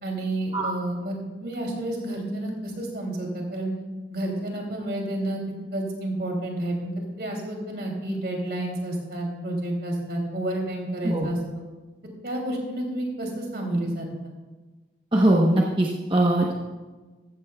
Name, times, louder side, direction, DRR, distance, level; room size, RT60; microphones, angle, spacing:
voice 1, 0.0-3.7 4.1-5.4 5.7-11.6 12.2-14.3, right 1 dB, 65° right, 0 dB, 2.8 m, -30 dB
voice 2, 15.1-16.5, right 1 dB, 30° right, -2 dB, 0.9 m, -21 dB
14.5 x 14.0 x 2.3 m, 1.3 s
head